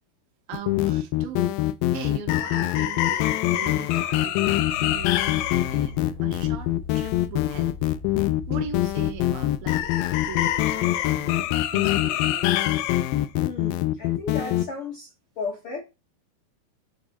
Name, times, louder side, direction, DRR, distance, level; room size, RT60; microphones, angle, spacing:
sound 1, 0.5-14.6, left 15 dB, 80° left, 2.1 m, -24 dB
voice 1, 0.5-1.6 1.9-7.7 8.5-12.7, right 8 dB, 85° right, 2.7 m, -40 dB
sound 2, 4.6-11.8, left 4 dB, ahead, 0.8 m, -40 dB
voice 2, 13.4-15.1 15.4-15.8, left 4 dB, 65° left, 1.4 m, -34 dB
9.0 x 3.5 x 4.1 m
omnidirectional pair, 4.3 m